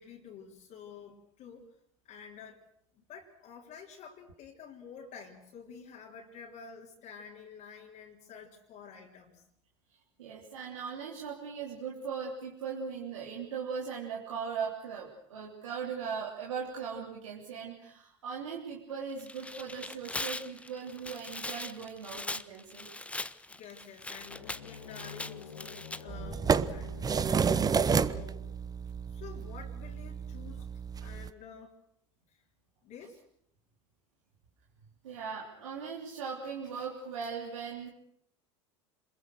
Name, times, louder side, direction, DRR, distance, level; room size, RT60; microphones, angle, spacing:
voice 1, 0.0-1.7 2.1-2.6 3.0-9.4 23.5-26.9 27.6-28.4 29.1-30.7 31.0-31.7 32.3-32.4 32.8-33.2, left 6 dB, 50° left, -3 dB, 3.7 m, -49 dB
voice 2, 10.2-22.9 31.0-31.1 35.0-37.9, right 6 dB, 80° right, -3 dB, 3.3 m, -39 dB
Tearing, 19.1-26.0, left 2 dB, 10° left, 0.8 m, -40 dB
sound 1, 24.1-28.9, left 6 dB, 85° left, 1.7 m, -48 dB
sound 2, 26.1-31.3, right 6 dB, 25° right, 1.0 m, -30 dB
27.0 x 21.5 x 6.5 m, 0.72 s
hypercardioid pair, 80°, 16 cm